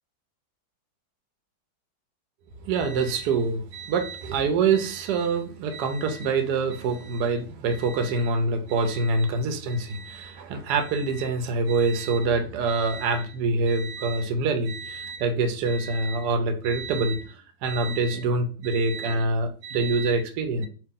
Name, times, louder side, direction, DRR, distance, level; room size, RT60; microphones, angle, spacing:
voice 1, 2.6-20.7, right 3 dB, 70° right, 1.0 m, -25 dB
2.9 x 2.8 x 3.6 m
omnidirectional pair, 2.1 m